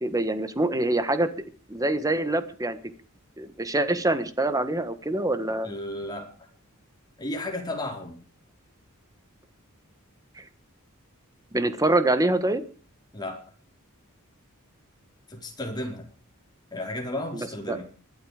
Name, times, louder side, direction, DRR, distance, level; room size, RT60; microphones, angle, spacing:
voice 1, 0.0-1.3 1.7-2.8 3.4-5.7 10.4-10.5 11.5-12.6 17.3-17.8, right 2 dB, 15° right, 11 dB, 1.4 m, -25 dB
voice 2, 5.6-6.3 7.2-8.2 13.1-13.4 15.3-16.1 16.7-17.8, left 1 dB, 20° left, 2 dB, 4.4 m, -33 dB
20.5 x 12.0 x 5.0 m, 0.40 s
head